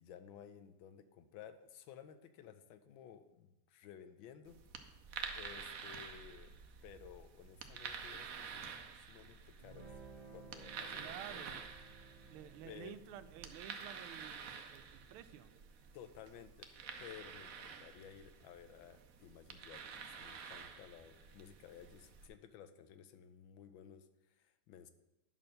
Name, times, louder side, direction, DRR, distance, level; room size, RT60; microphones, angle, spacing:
voice 1, 0.0-4.6 5.3-6.5 6.8-9.9 10.3-11.6 12.6-12.9 15.9-16.7 17.0-24.9, left 9 dB, 75° left, 11 dB, 1.3 m, -55 dB
sound 1, 4.4-22.3, right 6 dB, 65° right, 0.8 m, -49 dB
Guitar, 9.6-16.7, right 4 dB, 20° right, 1.2 m, -59 dB
voice 2, 11.0-11.7 12.3-15.5, right 10 dB, 85° right, 12 dB, 1.4 m, -52 dB
10.5 x 4.3 x 6.5 m, 0.98 s
omnidirectional pair, 2.3 m